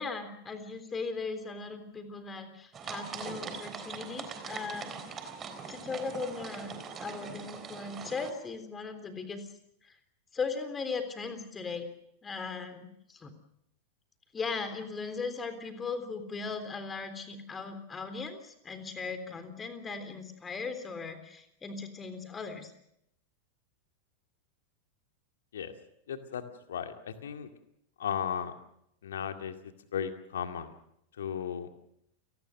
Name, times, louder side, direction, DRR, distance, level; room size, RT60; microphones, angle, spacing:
voice 1, 0.0-5.3 5.7-9.5 9.9-10.0 10.3-11.9 12.2-13.3 14.3-22.7, left 4 dB, 20° left, 9 dB, 3.5 m, -38 dB
sound 1, 2.7-8.3, right 6 dB, 25° right, 3.6 m, -42 dB
voice 2, 26.1-26.4 26.7-27.5 28.0-28.5 29.0-29.6 29.9-30.7 31.2-31.7, left 8 dB, 65° left, 7 dB, 2.2 m, -35 dB
29.5 x 19.0 x 6.5 m, 0.76 s
figure-of-eight pair, 90°, 0 cm